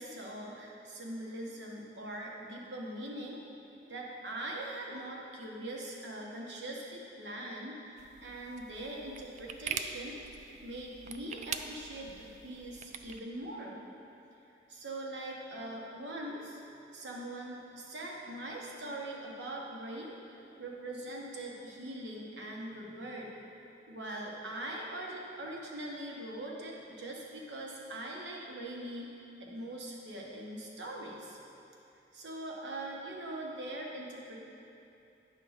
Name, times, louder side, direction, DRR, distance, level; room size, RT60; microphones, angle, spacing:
voice 1, 0.0-3.4 3.9-10.2 10.6-13.8 14.7-16.6 16.9-23.3 23.9-29.1 29.4-31.4 32.1-34.5, right 1 dB, 85° right, -2 dB, 1.3 m, -42 dB
sound 1, 8.0-13.2, right 7 dB, 40° right, 0.3 m, -43 dB
9.6 x 3.8 x 6.5 m, 2.7 s
head